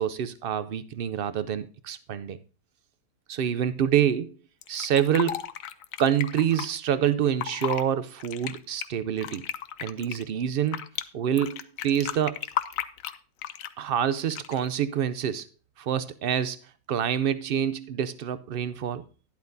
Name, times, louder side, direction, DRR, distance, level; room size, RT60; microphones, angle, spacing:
voice 1, 0.0-2.4 3.3-4.3 4.7-5.4 6.0-9.4 9.8-10.8 11.1-12.4 13.8-15.4 15.8-16.6 16.9-19.0, right 9 dB, 75° right, 0.5 m, -26 dB
Fill (with liquid), 4.6-6.7 7.3-7.8 8.2-11.0 11.4-13.8 14.3-14.7, left 10 dB, 70° left, 1.0 m, -34 dB
11.5 x 10.5 x 2.6 m
omnidirectional pair, 1.6 m